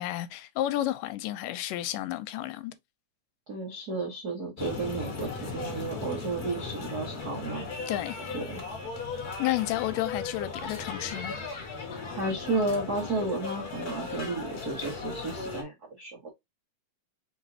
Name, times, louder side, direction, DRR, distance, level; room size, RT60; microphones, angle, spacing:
voice 1, 0.0-2.8 7.9-8.2 9.4-11.4, left 14 dB, 85° left, 2.2 m, -31 dB
voice 2, 3.5-7.6 8.3-8.6 12.1-16.3, right 2 dB, 70° right, 0.9 m, -32 dB
sound 1, 4.6-15.6, left 4 dB, 45° left, 1.3 m, -37 dB
4.9 x 4.0 x 2.7 m
omnidirectional pair, 3.9 m